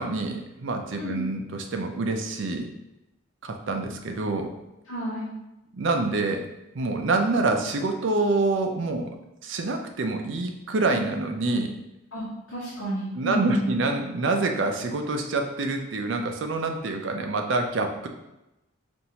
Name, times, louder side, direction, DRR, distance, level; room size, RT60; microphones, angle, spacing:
voice 1, 0.0-2.7 3.4-4.5 5.7-6.5 6.7-9.2 9.4-11.7 13.2-18.1, right 3 dB, 65° right, 4 dB, 0.5 m, -26 dB
voice 2, 4.9-5.3 12.1-13.7, right 1 dB, 65° left, -10 dB, 1.2 m, -30 dB
5.4 x 2.6 x 2.9 m, 0.93 s
head